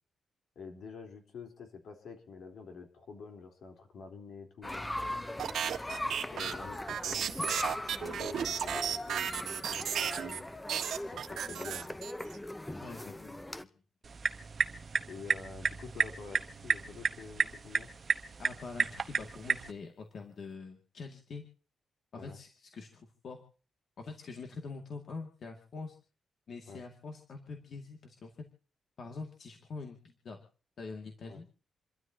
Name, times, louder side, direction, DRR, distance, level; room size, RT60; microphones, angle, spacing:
voice 1, 0.6-5.1 6.3-7.3 7.9-10.4 11.1-12.0 15.1-17.9 19.2-19.3 22.2-22.4 26.7-26.8 31.2-31.4, left 5 dB, 65° left, 3 dB, 3.6 m, -48 dB
sound 1, 4.6-13.6, left 1 dB, 10° left, 0.8 m, -40 dB
sound 2, 5.4-10.4 10.7-12.4, right 8 dB, 75° right, 1.6 m, -34 dB
voice 2, 12.8-13.7 18.4-21.4 22.1-23.4 24.0-26.0 26.5-28.3 29.0-30.4 30.8-31.5, left 4 dB, 50° left, 3 dB, 2.2 m, -45 dB
sound 3, 14.0-19.7, right 5 dB, 35° right, 1.1 m, -33 dB
28.0 x 13.0 x 2.8 m, 0.39 s
wide cardioid pair, 155°, 0 cm